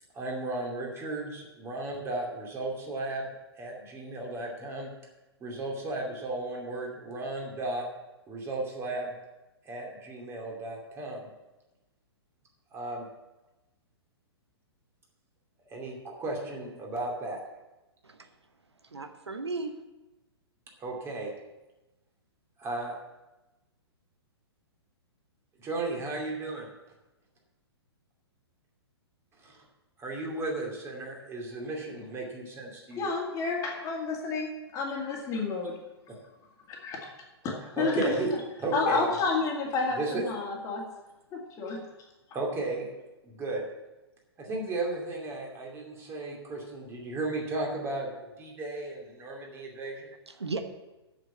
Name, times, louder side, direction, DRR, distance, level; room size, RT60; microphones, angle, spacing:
voice 1, 0.1-3.3 3.6-4.9 5.4-7.9 8.3-9.1 9.7-11.2 12.7-13.1 15.7-17.4 20.8-21.3 22.6-23.0 25.6-26.7 29.4-29.6 30.0-33.1 36.1-36.2 37.4-38.3 38.6-39.1 39.9-40.2 42.3-42.9 43.2-43.6 44.4-50.1, right 2 dB, 20° right, -1 dB, 2.6 m, -34 dB
voice 2, 18.8-19.8 50.3-50.6, right 3 dB, 80° right, 7 dB, 1.0 m, -35 dB
voice 3, 33.0-35.8 36.8-37.0 37.4-38.2 38.7-40.8 41.3-41.8, left 4 dB, 25° left, 0 dB, 2.1 m, -30 dB
7.7 x 7.2 x 8.2 m, 1.1 s
figure-of-eight pair, 115°, 14 cm